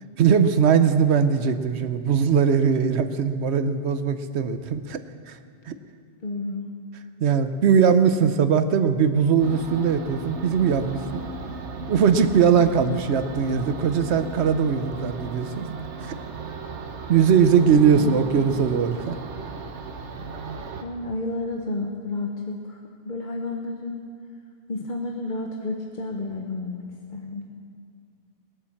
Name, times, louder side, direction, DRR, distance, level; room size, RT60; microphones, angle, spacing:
voice 1, 0.2-5.0 5.3-5.4 5.7-5.8 7.2-11.2 11.9-15.7 16.0-16.1 17.1-19.2, right 7 dB, 75° right, 10 dB, 1.1 m, -20 dB
voice 2, 6.2-6.7 17.5-18.2 20.8-24.1 24.7-27.5, left 2 dB, 45° left, 1 dB, 1.1 m, -31 dB
sound 1, 9.4-20.8, right 3 dB, 90° right, 1.4 m, -36 dB
19.5 x 8.7 x 7.1 m, 2.2 s
omnidirectional pair, 1.2 m